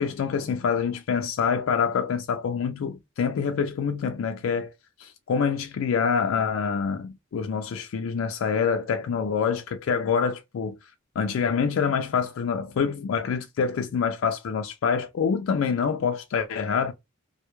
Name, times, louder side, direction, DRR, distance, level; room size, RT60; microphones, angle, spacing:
voice 1, 0.0-4.7 5.0-10.7 11.2-16.9, left 6 dB, 70° left, 0.3 m, -26 dB
2.2 x 2.0 x 2.9 m
head